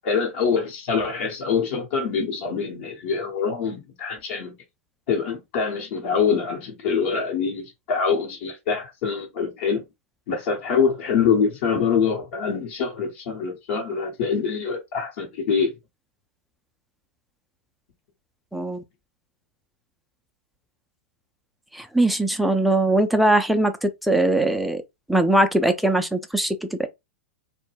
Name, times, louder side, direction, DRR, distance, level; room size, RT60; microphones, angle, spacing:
voice 1, 0.0-4.5 5.1-9.9 10.3-15.7, left 6 dB, 55° left, 0.9 m, -24 dB
voice 2, 18.5-18.8 21.7-24.8 25.1-26.9, right 1 dB, ahead, 0.4 m, -21 dB
2.2 x 2.2 x 3.2 m
figure-of-eight pair, 100°, 7 cm